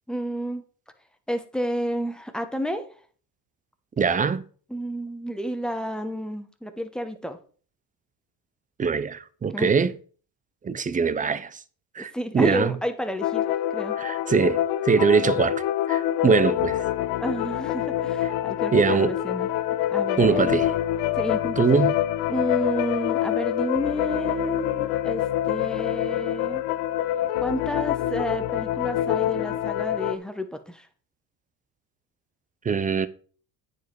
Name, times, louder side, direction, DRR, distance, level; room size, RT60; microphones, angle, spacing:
voice 1, 0.1-0.6 1.3-2.8 4.7-7.4 9.5-9.7 12.0-14.0 17.2-19.5 19.9-20.6 21.1-21.6 22.3-26.6 27.4-30.9, equal, ahead, 1.1 m, -31 dB
voice 2, 4.0-4.4 8.8-9.9 10.6-11.6 12.0-12.7 14.0-16.8 18.7-19.1 20.2-20.7 21.6-21.9 32.6-33.1, right 5 dB, 20° right, 0.5 m, -22 dB
sound 1, 13.2-30.2, left 12 dB, 90° left, 0.7 m, -26 dB
9.1 x 5.1 x 4.6 m
supercardioid pair, 100°, 44 cm